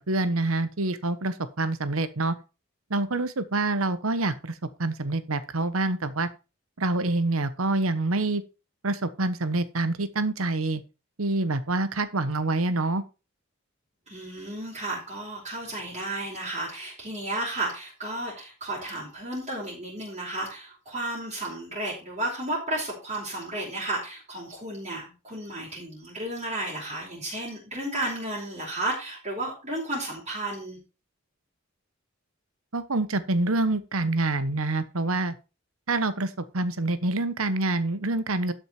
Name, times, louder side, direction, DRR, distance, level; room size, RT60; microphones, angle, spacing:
voice 1, 0.1-2.3 2.9-4.5 4.8-6.3 6.8-8.4 8.8-10.8 11.2-13.0 32.7-35.3 35.9-36.3 36.5-38.5, right 2 dB, 90° right, 13 dB, 1.2 m, -26 dB
voice 2, 14.1-30.8, right 1 dB, 35° right, -5 dB, 4.7 m, -33 dB
12.5 x 6.6 x 4.4 m, 0.31 s
head